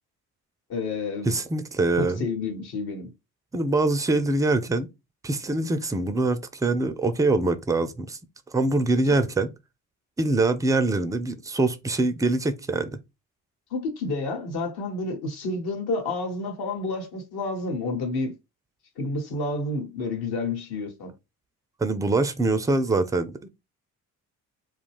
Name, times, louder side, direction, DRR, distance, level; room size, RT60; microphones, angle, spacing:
voice 1, 0.7-1.4 2.0-3.1 13.7-18.3 19.0-21.1, left 3 dB, 55° left, 1.1 m, -30 dB
voice 2, 1.2-2.2 3.5-4.9 5.2-8.2 8.5-9.5 10.2-13.0 21.8-23.5, right 2 dB, 10° right, 0.3 m, -24 dB
2.3 x 2.2 x 3.3 m
hypercardioid pair, 45°, 44 cm